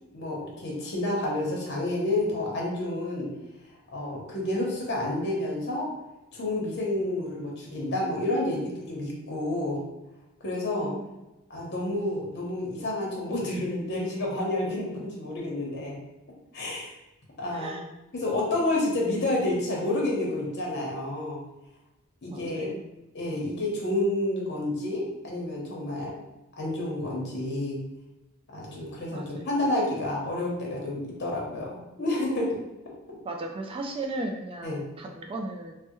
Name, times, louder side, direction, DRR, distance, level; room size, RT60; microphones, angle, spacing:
voice 1, 0.1-3.3 3.9-5.9 6.3-9.8 10.4-10.9 11.5-15.9 16.5-16.9 17.4-17.8 18.1-21.4 22.2-22.7 23.1-26.2 26.6-27.8 28.5-32.6 34.6-34.9, left 1 dB, 55° left, -2 dB, 0.9 m, -29 dB
voice 2, 10.7-11.1 17.5-17.8 22.3-22.7 29.1-29.5 33.2-35.7, right 2 dB, 25° right, 1 dB, 0.3 m, -36 dB
3.3 x 2.1 x 3.0 m, 1.0 s
head